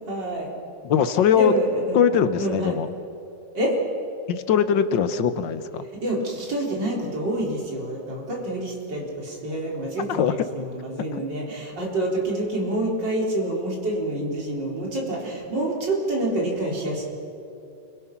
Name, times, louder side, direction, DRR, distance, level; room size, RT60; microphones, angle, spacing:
voice 1, 0.1-0.5 1.3-2.0 2.4-2.7 3.5-3.8 5.9-17.0, right 1 dB, 75° right, -2 dB, 4.5 m, -27 dB
voice 2, 0.8-1.5 1.9-2.9 4.3-5.9 10.1-10.3 11.1-11.2, left 8 dB, 80° left, 11 dB, 1.7 m, -21 dB
29.0 x 22.0 x 6.0 m, 2.7 s
omnidirectional pair, 1.9 m